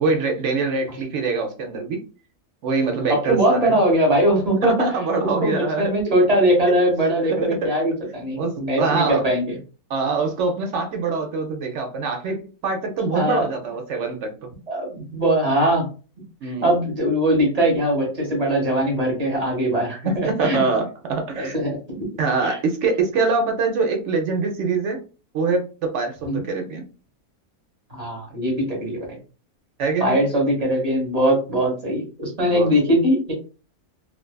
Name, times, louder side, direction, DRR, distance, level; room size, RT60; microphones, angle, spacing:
voice 1, 0.0-2.0 2.6-3.8 4.6-5.9 7.2-7.4 8.4-9.2 9.9-14.3 16.4-16.7 20.0-21.6 22.2-25.0 25.3-25.6 25.9-26.9 29.8-30.2 32.5-32.7, right 4 dB, 65° right, 3 dB, 0.8 m, -24 dB
voice 2, 3.3-4.7 5.4-9.6 13.1-13.4 14.7-15.9 16.4-20.6 21.3-22.0 22.4-22.6 26.3-26.4 27.9-29.2 30.0-33.3, right 1 dB, 30° right, 0 dB, 0.9 m, -21 dB
2.5 x 2.3 x 2.2 m, 0.35 s
omnidirectional pair, 1.6 m